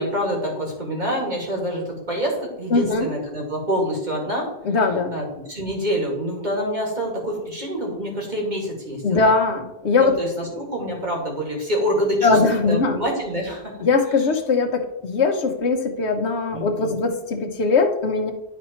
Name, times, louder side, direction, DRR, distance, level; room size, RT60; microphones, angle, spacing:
voice 1, 0.0-4.5 5.1-9.2 10.0-12.4 12.7-13.7 16.5-17.0, equal, 45° right, -2 dB, 2.5 m, -26 dB
voice 2, 2.7-3.1 4.6-5.1 9.0-10.1 12.2-13.0 13.8-18.3, left 4 dB, 90° left, 6 dB, 1.3 m, -20 dB
11.0 x 4.3 x 4.4 m, 0.92 s
omnidirectional pair, 1.1 m